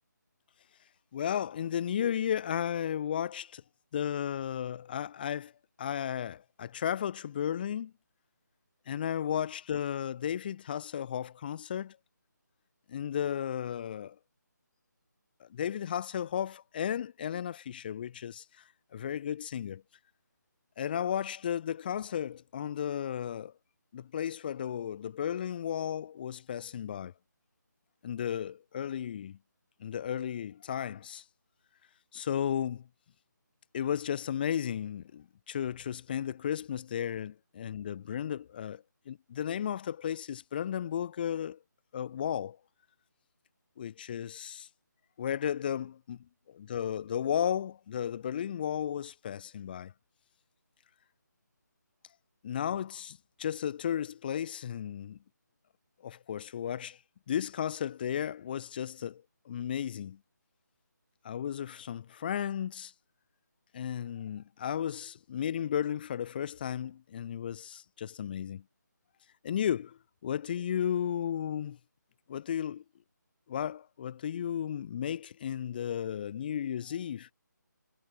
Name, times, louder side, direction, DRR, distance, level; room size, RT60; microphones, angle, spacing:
voice 1, 1.1-3.6 3.9-5.5 5.8-7.9 8.9-12.0 12.9-14.2 15.4-18.4 18.9-19.8 20.8-23.5 23.9-27.1 28.0-29.4 29.8-31.2 32.1-32.9 33.7-41.6 41.9-42.6 43.8-44.7 45.2-46.2 46.5-49.9 52.4-55.2 56.0-57.0 57.3-60.2 61.2-62.9 63.7-68.6 69.4-71.8 72.3-72.8 73.5-77.3, left 9 dB, 30° left, 1.8 m, -34 dB
figure-of-eight pair, 155°, 10 cm